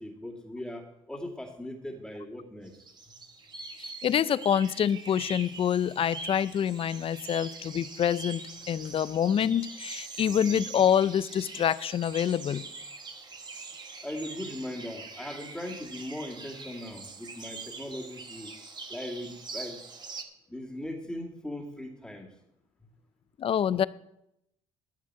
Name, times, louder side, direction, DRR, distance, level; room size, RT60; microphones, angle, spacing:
voice 1, 0.0-2.7 14.0-18.5 18.9-19.8 20.5-22.3, left 1 dB, 5° left, -7 dB, 2.4 m, -39 dB
sound 1, 2.7-20.2, right 4 dB, 30° right, 1.5 m, -43 dB
voice 2, 4.0-12.7 23.4-23.9, left 9 dB, 45° left, 18 dB, 0.5 m, -26 dB
14.0 x 7.3 x 4.7 m, 0.82 s
supercardioid pair, 80°, 14 cm